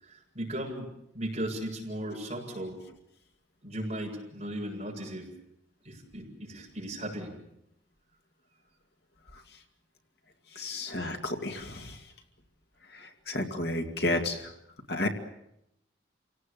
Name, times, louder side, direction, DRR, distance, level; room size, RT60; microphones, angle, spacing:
voice 1, 0.0-2.8 3.6-5.3 5.8-7.4 10.6-10.7, right 1 dB, 35° right, -1 dB, 7.6 m, -37 dB
voice 2, 10.6-11.9 13.0-14.4 14.9-15.1, left 1 dB, 55° left, 3 dB, 2.4 m, -31 dB
29.0 x 18.0 x 8.4 m, 0.80 s
head